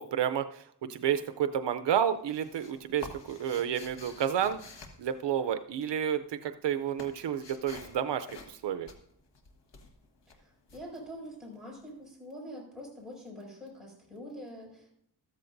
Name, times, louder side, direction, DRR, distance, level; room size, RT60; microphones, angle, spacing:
voice 1, 0.0-4.6 5.0-8.9, right 9 dB, 80° right, 9 dB, 0.6 m, -30 dB
sound 1, 1.1-1.6 1.9-5.9 6.2-11.8, left 3 dB, 80° left, 1.5 m, -50 dB
voice 2, 10.3-14.9, equal, ahead, -4 dB, 6.0 m, -45 dB
14.0 x 13.5 x 2.6 m, 0.69 s
wide cardioid pair, 125°, 41 cm